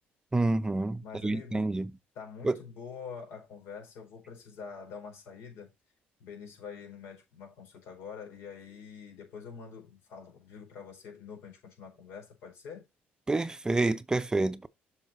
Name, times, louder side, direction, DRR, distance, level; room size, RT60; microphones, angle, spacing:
voice 1, 0.3-1.9 2.4-2.6 13.3-14.7, right 2 dB, 15° right, 0.6 m, -28 dB
voice 2, 1.0-1.7 2.1-5.7 6.2-12.9, left 6 dB, 80° left, 4.6 m, -45 dB
7.6 x 6.0 x 4.3 m
cardioid pair, 85°, 4 cm